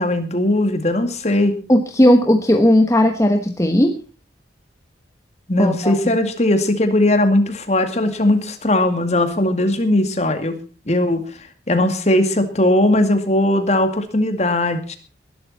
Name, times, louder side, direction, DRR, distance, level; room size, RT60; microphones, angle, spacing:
voice 1, 0.0-1.5 5.5-10.6 10.9-11.2 11.7-15.0, left 1 dB, 35° left, 8 dB, 2.2 m, -18 dB
voice 2, 1.7-4.0 5.6-6.0, left 1 dB, 15° left, 5 dB, 1.1 m, -15 dB
20.0 x 12.0 x 4.2 m, 0.37 s
head